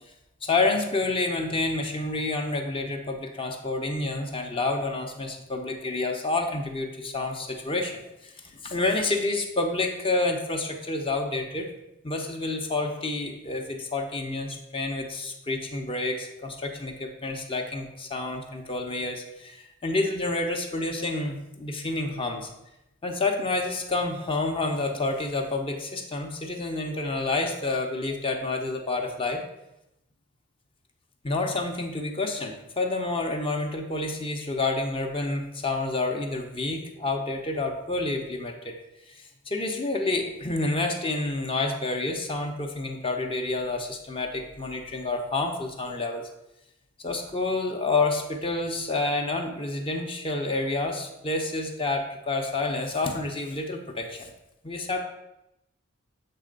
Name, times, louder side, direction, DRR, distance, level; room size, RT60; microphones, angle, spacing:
voice 1, 0.4-7.9 8.2-11.7 12.0-22.5 23.0-29.4 31.2-38.7 39.1-46.3 47.0-54.3 54.6-55.0, left 2 dB, 25° left, 3 dB, 0.7 m, -29 dB
7.6 x 3.3 x 5.1 m, 0.88 s
head